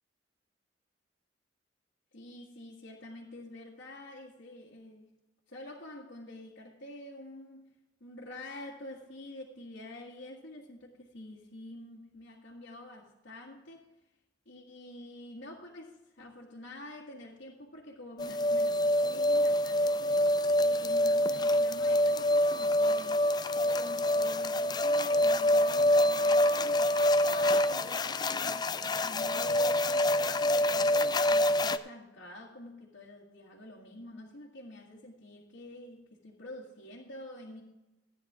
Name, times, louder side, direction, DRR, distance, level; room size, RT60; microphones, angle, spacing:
voice 1, 2.1-5.1 5.5-7.7 8.0-13.8 14.5-23.3 23.6-37.6, left 1 dB, 75° left, -6 dB, 1.7 m, -47 dB
sound 1, 18.2-31.8, left 1 dB, 25° left, 0.4 m, -26 dB
14.5 x 9.7 x 3.6 m, 0.99 s
head